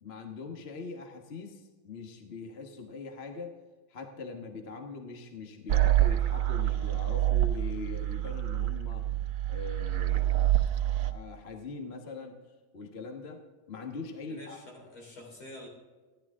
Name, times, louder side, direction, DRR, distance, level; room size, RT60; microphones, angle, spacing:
voice 1, 0.0-3.5 3.9-9.1 9.5-12.4 12.7-13.4 13.7-14.6, left 4 dB, 35° left, 3 dB, 1.2 m, -42 dB
sound 1, 5.7-11.1, right 13 dB, 65° right, 0.8 m, -27 dB
voice 2, 14.3-15.7, left 1 dB, 70° left, -1 dB, 4.3 m, -47 dB
15.0 x 11.0 x 3.7 m, 1.3 s
omnidirectional pair, 2.4 m